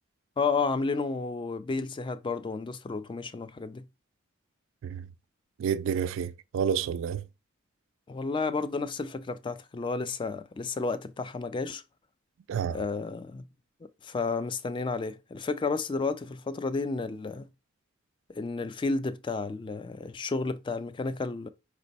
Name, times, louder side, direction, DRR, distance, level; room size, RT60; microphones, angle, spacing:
voice 1, 0.4-3.8 8.1-11.8 12.7-13.4 14.0-17.5 18.4-21.5, left 4 dB, 25° left, 0.3 m, -31 dB
voice 2, 5.6-7.2 12.5-12.8, right 7 dB, 65° right, 0.3 m, -29 dB
5.1 x 2.1 x 4.0 m
head